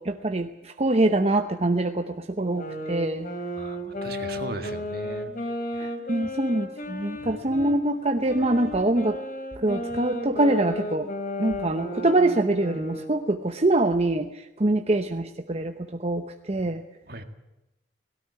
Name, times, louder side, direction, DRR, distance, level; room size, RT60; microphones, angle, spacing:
voice 1, 0.0-3.3 5.8-9.2 9.6-11.1 11.4-16.8, right 2 dB, 35° right, 6 dB, 0.8 m, -24 dB
sound 1, 2.4-7.8 8.3-13.2, left 1 dB, 55° left, 3.3 m, -34 dB
voice 2, 3.6-5.3 7.1-7.7 17.1-17.2, right 2 dB, 60° right, 7 dB, 1.8 m, -38 dB
17.5 x 17.5 x 9.5 m, 0.98 s
head